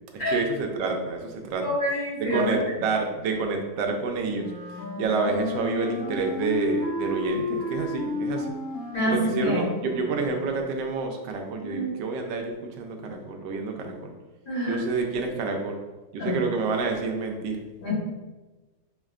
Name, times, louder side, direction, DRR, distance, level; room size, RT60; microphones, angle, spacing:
voice 1, 0.1-1.7 2.2-4.5 5.0-8.5 9.0-14.1 14.7-15.8 16.1-17.6, right 4 dB, 75° right, 3 dB, 1.2 m, -28 dB
voice 2, 1.6-2.6 8.9-9.7 11.6-11.9 14.5-14.8 16.2-16.4 17.8-18.0, left 1 dB, 60° left, -9 dB, 2.2 m, -27 dB
Wind instrument woodwind instrument, 4.3-10.5, left 2 dB, 85° left, 1.7 m, -33 dB
5.7 x 2.1 x 2.4 m, 1.2 s
omnidirectional pair, 2.1 m